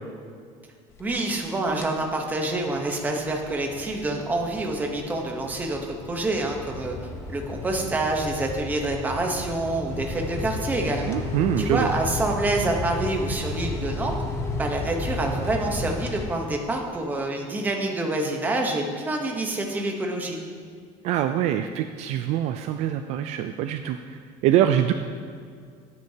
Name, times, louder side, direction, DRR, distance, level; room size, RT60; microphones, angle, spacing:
sound 1, 0.9-1.5 1.7-2.1 2.5-16.8, left 3 dB, 20° left, 0.7 m, -33 dB
voice 1, 1.0-5.8 6.1-7.0 7.3-11.2 11.6-14.1 14.6-20.4, right 2 dB, 10° right, 1 dB, 0.9 m, -27 dB
voice 2, 11.1-11.9 21.0-24.0 24.4-24.9, right 11 dB, 50° right, 8 dB, 0.4 m, -24 dB
14.0 x 9.5 x 2.8 m, 2.2 s
cardioid pair, 180°, 14 cm